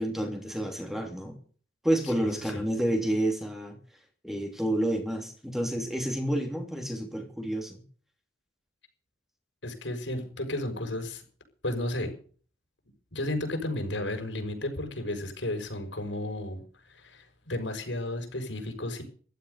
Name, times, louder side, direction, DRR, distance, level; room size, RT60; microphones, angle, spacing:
voice 1, 0.0-1.4 1.8-3.8 4.2-7.8, right 1 dB, ahead, 3 dB, 2.9 m, -29 dB
voice 2, 9.6-11.2 11.6-12.1 13.1-16.6 16.9-19.0, left 1 dB, 85° left, 5 dB, 6.3 m, -33 dB
15.5 x 12.5 x 6.9 m, 0.42 s
head